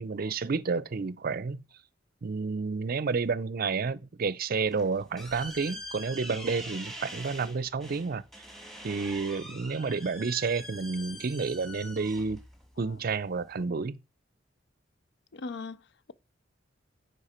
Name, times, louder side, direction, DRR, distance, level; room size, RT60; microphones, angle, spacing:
voice 1, 0.0-1.6 2.2-8.2 8.8-12.4 12.8-14.0, right 4 dB, 50° right, 0.5 m, -30 dB
sound 1, 4.5-13.6, equal, ahead, 1.7 m, -44 dB
voice 2, 15.3-16.1, left 4 dB, 60° left, 0.5 m, -41 dB
9.9 x 4.7 x 4.4 m
head